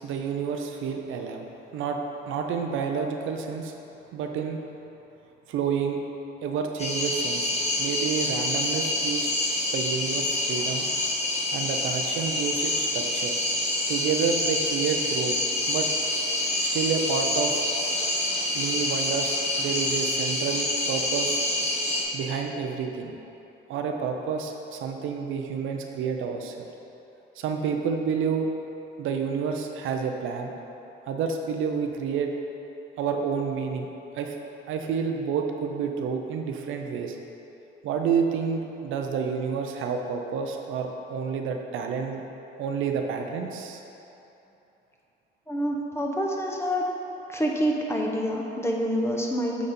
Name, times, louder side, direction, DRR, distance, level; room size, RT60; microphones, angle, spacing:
voice 1, 0.0-1.5 1.7-2.0 2.3-3.7 4.1-4.6 5.5-6.0 6.4-7.5 7.8-9.3 9.7-10.9 11.5-13.3 13.9-15.3 15.7-15.9 16.7-17.6 18.5-21.4 22.1-23.1 23.7-26.7 27.4-28.5 29.0-30.5 31.1-32.3 33.0-33.9 34.1-34.3 34.7-37.2 37.8-42.2 42.6-43.8, right 6 dB, 85° right, 3 dB, 0.6 m, -29 dB
sound 1, 6.8-22.0, left 1 dB, 35° left, 1.2 m, -27 dB
voice 2, 45.5-46.8 47.3-49.7, equal, 15° left, -1 dB, 0.9 m, -27 dB
8.3 x 4.1 x 4.2 m, 3.0 s
cardioid pair, 90°, 20 cm